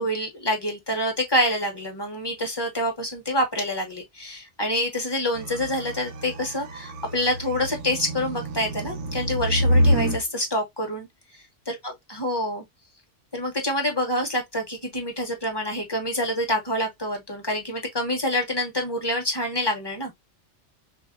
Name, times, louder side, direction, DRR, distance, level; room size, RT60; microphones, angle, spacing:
voice 1, 0.0-11.1 11.3-12.6 13.3-20.1, left 1 dB, 20° left, 1.1 m, -27 dB
sound 1, 5.4-10.2, equal, 75° right, 1.0 m, -26 dB
5.9 x 2.0 x 2.4 m
omnidirectional pair, 1.3 m